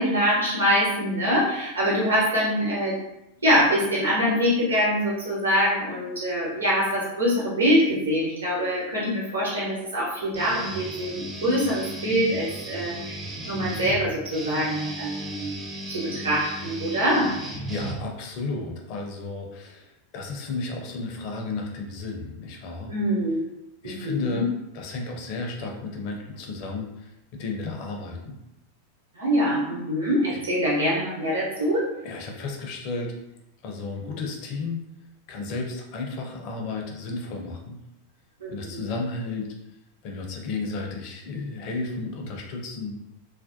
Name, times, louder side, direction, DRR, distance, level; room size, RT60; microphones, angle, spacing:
voice 1, 0.0-2.9 3.4-15.5 15.9-17.3 22.9-23.5 23.8-24.4 29.2-31.9 38.4-38.8, equal, 75° right, -6 dB, 0.9 m, -24 dB
Guitar, 10.3-18.4, right 1 dB, 15° right, 0.4 m, -36 dB
voice 2, 17.7-22.9 23.8-24.5 24.7-28.4 30.3-30.4 32.0-33.1 33.6-34.8 35.3-37.8 38.5-39.5 40.0-43.0, left 3 dB, 45° left, 1 dB, 0.5 m, -33 dB
2.4 x 2.1 x 2.5 m, 0.88 s
figure-of-eight pair, 90°, 0 cm